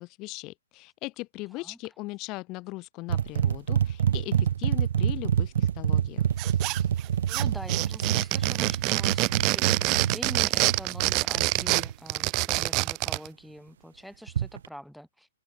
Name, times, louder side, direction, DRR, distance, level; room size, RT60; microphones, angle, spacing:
voice 1, 0.0-6.2, left 22 dB, 30° left, 3.4 m, -39 dB
sound 1, 3.1-11.9 14.3-14.7, right 9 dB, 65° right, 2.0 m, -27 dB
sound 2, 6.4-7.0 7.3-13.3, right 27 dB, 30° right, 0.4 m, -26 dB
voice 2, 7.3-15.3, equal, ahead, 4.9 m, -44 dB
open air
hypercardioid pair, 145°, 0 cm